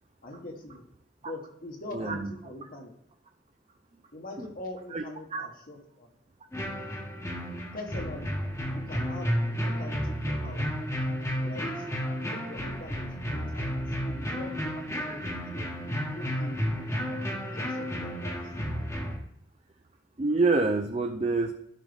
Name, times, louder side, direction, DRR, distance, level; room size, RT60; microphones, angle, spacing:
voice 1, 0.2-0.8 1.2-2.9 4.1-6.1 7.7-8.4 8.7-9.3 9.6-10.7 11.4-11.9 12.3-17.1 17.5-18.5, left 1 dB, 50° left, 1 dB, 1.4 m, -43 dB
voice 2, 1.9-2.3 4.9-5.0 5.3-5.5 20.2-21.5, right 3 dB, 35° right, 5 dB, 0.5 m, -26 dB
sound 1, 6.5-19.2, equal, 15° left, 1.2 m, -32 dB
12.5 x 5.5 x 3.5 m, 0.74 s
head